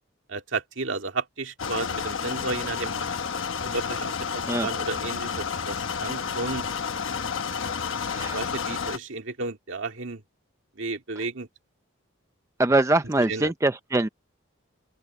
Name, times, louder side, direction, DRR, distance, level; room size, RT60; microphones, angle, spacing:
voice 1, 0.3-3.1 3.6-6.7 8.2-10.2 10.8-11.5 13.2-13.5, right 3 dB, 70° right, 2.1 m, -33 dB
sound 1, 1.6-9.0, left 6 dB, 70° left, 1.2 m, -30 dB
voice 2, 12.6-14.1, right 2 dB, 15° right, 0.4 m, -23 dB
open air
head